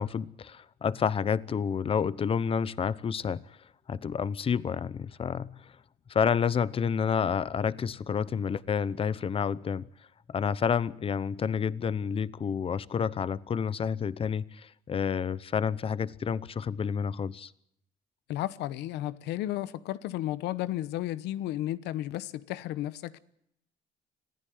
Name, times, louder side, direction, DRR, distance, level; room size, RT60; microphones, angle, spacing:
voice 1, 0.0-3.4 3.9-5.7 6.1-9.9 10.3-17.5, left 7 dB, 35° left, 0.8 m, -29 dB
voice 2, 18.3-23.2, left 14 dB, 85° left, 1.0 m, -33 dB
25.5 x 15.5 x 9.4 m
cardioid pair, 110°, 17 cm